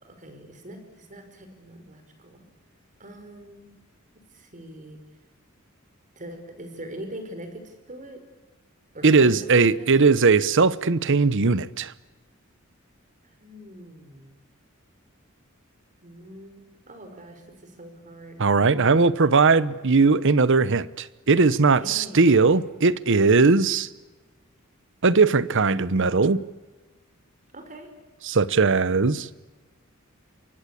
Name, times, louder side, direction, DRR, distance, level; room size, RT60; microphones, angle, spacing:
voice 1, 0.0-2.4 3.0-3.8 4.3-5.0 6.2-8.2 8.9-10.2 13.4-14.4 16.0-19.7 21.8-22.2 27.5-27.9, right 1 dB, 40° right, 5.3 m, -42 dB
voice 2, 9.0-11.9 18.4-23.9 25.0-26.4 28.2-29.3, right 4 dB, 60° right, 0.9 m, -19 dB
28.0 x 23.5 x 8.4 m
head